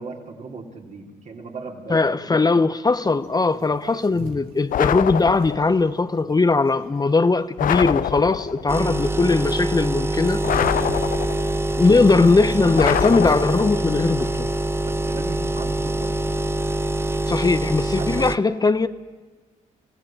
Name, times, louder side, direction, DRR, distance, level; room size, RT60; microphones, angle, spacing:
voice 1, 0.0-2.3 11.9-12.1 14.8-16.2 18.0-18.3, right 4 dB, 55° right, 3.9 m, -37 dB
voice 2, 1.9-10.4 10.7-10.9 11.8-14.5 17.3-18.9, left 3 dB, 25° left, 0.9 m, -19 dB
sound 1, 2.9-13.6, right 4 dB, 85° right, 1.8 m, -47 dB
sound 2, 4.7-5.8 7.6-8.7 10.4-11.6 12.8-13.9, left 10 dB, 65° left, 0.7 m, -25 dB
sound 3, 8.7-18.4, right 1 dB, 15° right, 0.9 m, -25 dB
26.5 x 16.0 x 9.0 m
supercardioid pair, 65°, 15 cm